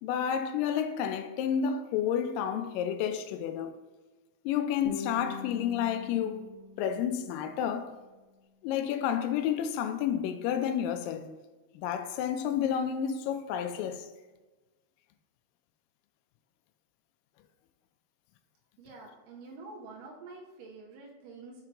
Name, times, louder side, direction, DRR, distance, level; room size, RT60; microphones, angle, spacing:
voice 1, 0.0-3.8 4.5-6.4 6.8-7.9 8.6-11.3 11.8-14.1, left 8 dB, 85° left, 2.0 m, -30 dB
Guitar, 4.9-7.9, left 5 dB, 65° left, 2.3 m, -43 dB
voice 2, 18.8-21.6, right 3 dB, 75° right, 2.2 m, -47 dB
5.9 x 4.4 x 3.7 m
omnidirectional pair, 4.4 m